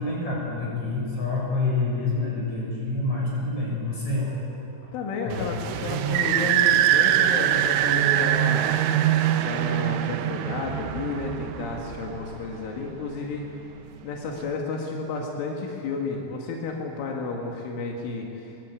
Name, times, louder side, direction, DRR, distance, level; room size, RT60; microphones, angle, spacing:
voice 1, 0.0-4.9 5.3-5.4, left 3 dB, 35° left, -3 dB, 8.2 m, -27 dB
voice 2, 4.9-8.7 9.4-13.4 14.0-18.5, left 4 dB, 85° left, 0 dB, 4.6 m, -32 dB
sound 1, 5.3-12.6, right 11 dB, 85° right, 3.5 m, -23 dB
25.5 x 22.5 x 8.4 m, 2.8 s
omnidirectional pair, 5.5 m